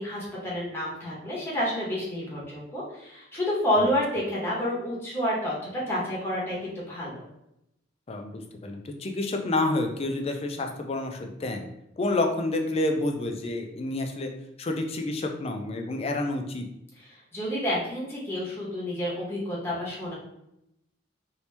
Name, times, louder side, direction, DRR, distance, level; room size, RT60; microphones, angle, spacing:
voice 1, 0.0-7.2 17.3-20.1, equal, 15° left, -6 dB, 1.0 m, -29 dB
voice 2, 8.1-11.6 12.0-14.3 14.6-16.7, left 2 dB, 30° left, 3 dB, 0.4 m, -29 dB
2.9 x 2.7 x 3.3 m, 0.83 s
head